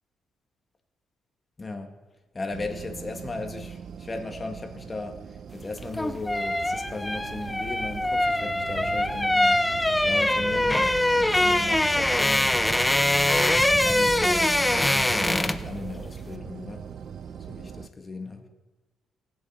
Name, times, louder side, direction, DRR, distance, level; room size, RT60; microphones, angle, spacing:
voice 1, 1.6-1.9 2.3-12.6 13.2-16.9 17.5-18.4, left 3 dB, 30° left, 5 dB, 1.7 m, -37 dB
sound 1, 2.5-17.9, right 7 dB, 60° right, 0.5 m, -39 dB
sound 2, 5.7-15.7 16.0-16.2, left 1 dB, 10° left, 0.6 m, -23 dB
19.0 x 7.2 x 4.3 m, 1.2 s
cardioid pair, 75°, 0 cm